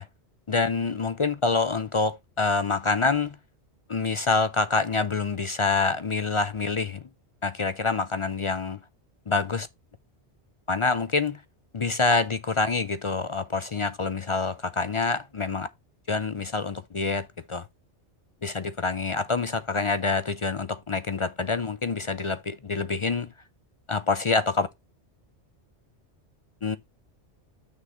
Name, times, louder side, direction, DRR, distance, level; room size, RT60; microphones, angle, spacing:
voice 1, 0.5-3.4 3.9-7.1 7.4-8.8 9.3-9.7 10.7-11.4 11.7-15.7 16.1-17.7 18.4-23.3 23.9-24.7 26.6-26.8, left 4 dB, 45° left, 0.4 m, -26 dB
6.4 x 3.7 x 5.7 m
omnidirectional pair, 1.2 m